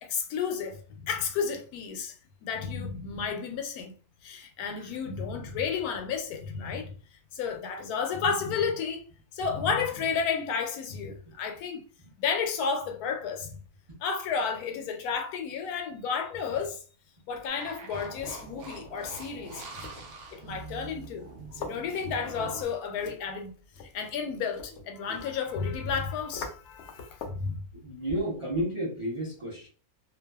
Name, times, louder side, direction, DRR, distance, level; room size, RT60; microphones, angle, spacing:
voice 1, 0.0-2.1 2.4-3.9 4.2-6.9 7.3-9.1 9.3-11.8 12.2-13.5 14.0-16.8 17.3-19.6 20.3-21.3 21.5-23.5 23.9-27.6, left 6 dB, 85° left, 1.1 m, -32 dB
sound 1, 17.3-27.5, left 4 dB, 65° left, 0.7 m, -47 dB
sound 2, 17.5-22.6, right 3 dB, 65° right, 0.6 m, -44 dB
voice 2, 27.7-29.7, right 1 dB, 30° right, 0.7 m, -33 dB
2.6 x 2.2 x 2.2 m
omnidirectional pair, 1.6 m